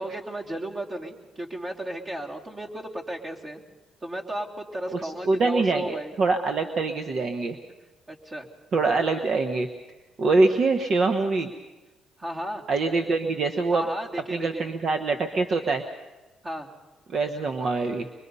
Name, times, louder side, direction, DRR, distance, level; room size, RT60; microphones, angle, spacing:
voice 1, 0.0-3.6 4.0-6.1 8.1-8.5 10.4-10.5 12.2-12.6 13.7-14.7 16.4-16.7, right 1 dB, 30° right, 0 dB, 3.0 m, -34 dB
voice 2, 4.9-7.6 8.7-9.7 10.2-11.5 12.7-13.8 14.3-15.8 17.1-18.1, right 3 dB, 55° right, 6 dB, 1.2 m, -24 dB
24.5 x 22.5 x 5.6 m, 1.1 s
cardioid pair, 90°, 0 cm